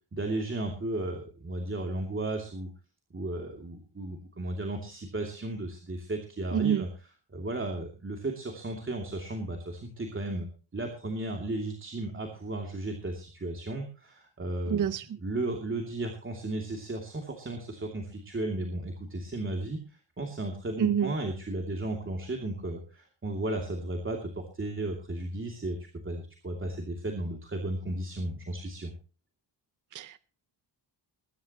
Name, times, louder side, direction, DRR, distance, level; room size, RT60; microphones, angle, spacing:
voice 1, 0.1-2.7 3.1-6.9 7.3-10.5 10.7-14.9 15.2-25.8 26.0-28.9, right 2 dB, 25° right, 2 dB, 2.7 m, -34 dB
voice 2, 6.5-6.9 14.7-15.2 20.8-21.1 29.9-30.2, right 9 dB, 45° right, 14 dB, 0.6 m, -27 dB
21.0 x 12.0 x 3.0 m, 0.36 s
wide cardioid pair, 155°, 45 cm